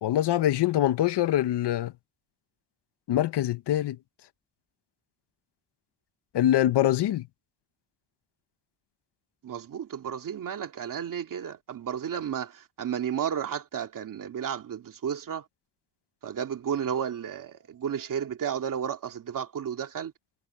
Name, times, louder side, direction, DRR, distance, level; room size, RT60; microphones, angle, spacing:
voice 1, 0.0-1.9 3.1-4.0 6.3-7.2, left 12 dB, 70° left, 1.0 m, -24 dB
voice 2, 9.4-15.5 16.2-20.1, right 8 dB, 50° right, 2.4 m, -32 dB
wide cardioid pair, 170°, 42 cm